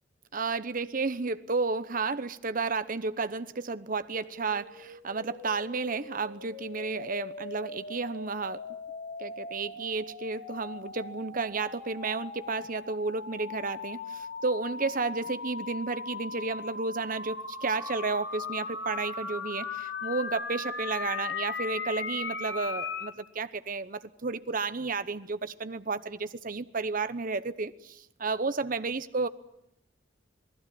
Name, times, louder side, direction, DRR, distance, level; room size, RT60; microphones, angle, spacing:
voice 1, 0.3-8.6 9.2-29.3, right 4 dB, 45° right, 13 dB, 0.9 m, -32 dB
sound 1, 4.2-23.1, left 4 dB, 70° left, 3.0 m, -39 dB
27.5 x 19.0 x 8.6 m, 0.82 s
head